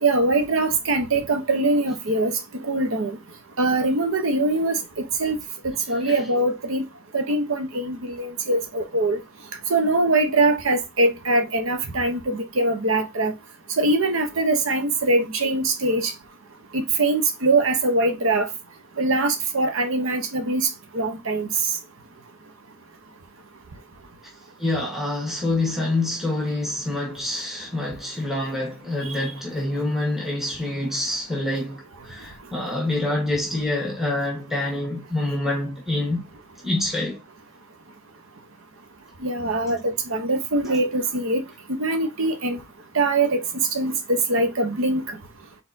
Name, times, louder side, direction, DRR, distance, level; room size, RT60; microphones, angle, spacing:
voice 1, 0.0-2.3 2.6-3.2 3.6-4.8 5.2-5.4 5.6-6.8 7.1-9.2 9.7-13.3 13.8-16.1 16.7-18.5 19.0-20.7 20.9-21.5 39.2-41.4 41.8-42.6 42.9-43.4 43.7-43.9 44.3-45.0, right 2 dB, 70° right, 0.8 m, -22 dB
voice 2, 24.6-36.2 36.6-37.2, left 2 dB, ahead, 1.3 m, -26 dB
4.2 x 4.1 x 2.6 m
head